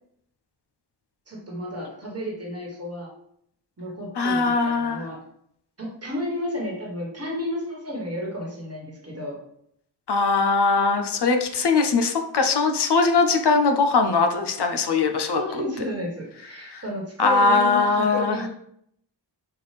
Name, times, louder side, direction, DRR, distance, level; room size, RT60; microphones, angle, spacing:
voice 1, 1.3-3.1 3.8-5.2 5.8-9.4 15.4-18.5, left 1 dB, 35° right, -2 dB, 1.3 m, -32 dB
voice 2, 4.2-5.1 10.1-15.4 16.7-16.8 17.2-18.4, left 4 dB, 65° left, 5 dB, 0.6 m, -21 dB
5.6 x 2.4 x 3.3 m, 0.70 s
wide cardioid pair, 95°, 44 cm